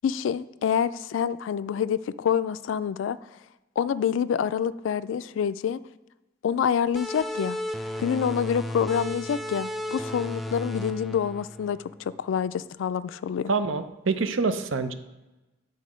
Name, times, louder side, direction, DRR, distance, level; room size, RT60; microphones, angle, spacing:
voice 1, 0.0-3.2 3.8-5.8 6.4-7.6 8.0-13.5, left 7 dB, 70° left, 16 dB, 0.3 m, -27 dB
sound 1, 6.9-12.2, left 1 dB, ahead, 0.4 m, -34 dB
voice 2, 13.5-14.9, right 4 dB, 75° right, 10 dB, 0.6 m, -26 dB
9.5 x 4.1 x 5.0 m, 1.1 s
head